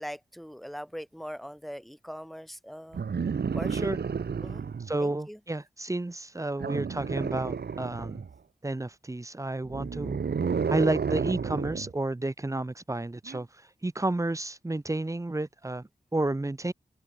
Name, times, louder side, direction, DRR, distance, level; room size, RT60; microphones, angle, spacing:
voice 1, 0.0-3.0 3.5-3.9 4.4-4.6 5.0-5.4, equal, ahead, 4.0 m, -41 dB
sound 1, 2.9-4.9 6.6-8.3 9.6-11.9 13.3-13.4, right 6 dB, 80° right, 1.5 m, -31 dB
voice 2, 4.9-8.2 8.6-10.2 10.7-13.5 13.8-16.7, right 2 dB, 20° right, 1.0 m, -31 dB
wide cardioid pair, 105°, 17 cm